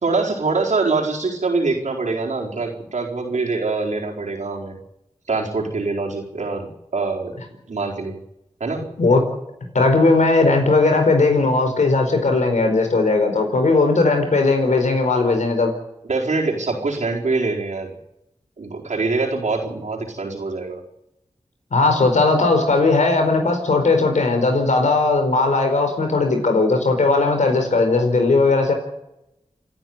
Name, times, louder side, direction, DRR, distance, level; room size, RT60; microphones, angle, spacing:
voice 1, 0.0-4.7 5.3-6.7 6.9-8.2 8.6-8.9 16.1-17.9 18.6-20.8, right 3 dB, 80° right, 0 dB, 4.4 m, -24 dB
voice 2, 9.7-15.7 21.7-28.7, left 3 dB, 85° left, 5 dB, 4.6 m, -17 dB
28.5 x 10.5 x 9.6 m, 0.87 s
cardioid pair, 45°, 12 cm